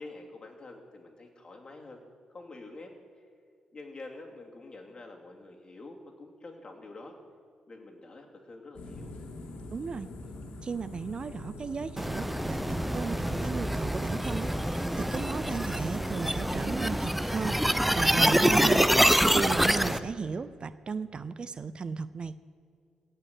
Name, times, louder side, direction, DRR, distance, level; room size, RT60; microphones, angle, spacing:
voice 1, 0.0-2.0 2.3-2.9 3.7-7.2 7.7-9.2, left 2 dB, 40° left, 1 dB, 2.7 m, -47 dB
sound 1, 8.7-16.5, left 1 dB, 70° left, 2.3 m, -43 dB
voice 2, 9.7-10.1 10.6-22.4, right 5 dB, 45° right, 15 dB, 0.5 m, -35 dB
sound 2, 12.0-20.0, equal, 5° right, 0.7 m, -26 dB
17.0 x 5.7 x 8.5 m, 2.3 s
supercardioid pair, 60°, 2 cm